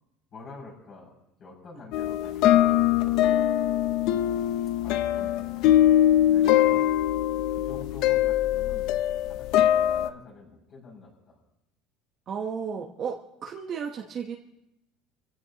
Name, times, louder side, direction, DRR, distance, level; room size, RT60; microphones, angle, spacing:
voice 1, 0.3-1.1 1.4-3.2 4.8-5.7 6.3-6.9 7.5-8.9 9.3-11.4, left 4 dB, 40° left, -2 dB, 6.3 m, -47 dB
sound 1, 1.9-10.1, left 12 dB, 60° left, 0.6 m, -22 dB
voice 2, 12.3-13.2 13.4-14.4, right 6 dB, 40° right, 2 dB, 1.0 m, -33 dB
28.5 x 15.5 x 2.9 m, 0.88 s
cardioid pair, 140°, 0 cm